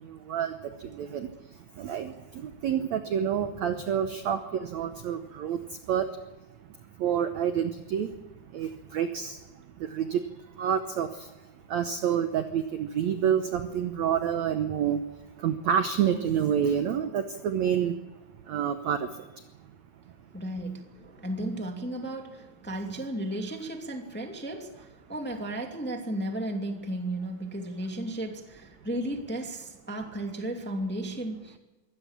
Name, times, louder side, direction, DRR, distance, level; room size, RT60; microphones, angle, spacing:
voice 1, 0.0-6.2 7.0-8.2 8.5-18.1 18.4-19.4, right 8 dB, 75° right, 8 dB, 1.6 m, -29 dB
voice 2, 20.3-31.6, right 1 dB, 5° left, 3 dB, 1.3 m, -34 dB
23.5 x 18.0 x 7.4 m, 1.1 s
omnidirectional pair, 4.5 m